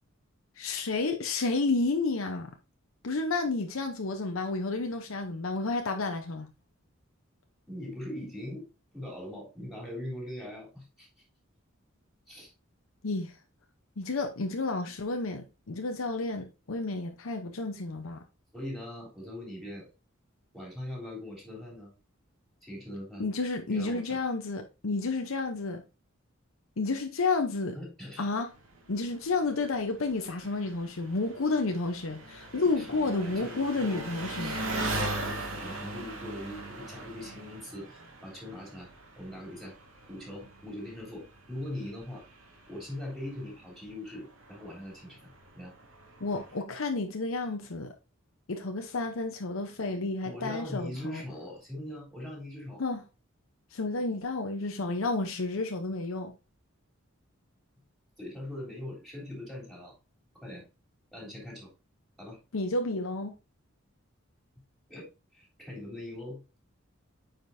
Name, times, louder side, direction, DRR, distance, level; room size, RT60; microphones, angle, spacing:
voice 1, 0.6-2.5 3.0-6.5 13.0-13.3 14.0-18.2 23.2-25.8 26.8-27.8 28.2-28.5 28.9-34.6 46.2-47.9 48.5-51.2 52.8-53.0 53.7-56.3 62.5-63.3, left 3 dB, 85° left, 0.8 m, -31 dB
voice 2, 7.7-8.7 8.9-11.1 12.3-12.5 18.5-19.9 20.5-21.9 22.6-23.2 23.7-24.2 27.7-28.3 32.6-34.1 34.4-38.9 39.2-39.8 40.1-42.2 42.7-45.7 50.2-52.8 58.2-59.9 60.3-60.6 61.1-61.7 62.2-62.4 64.9-66.4, left 1 dB, ahead, 3.4 m, -41 dB
Engine, 28.5-46.6, right 2 dB, 85° right, 2.1 m, -40 dB
8.9 x 5.1 x 2.6 m
head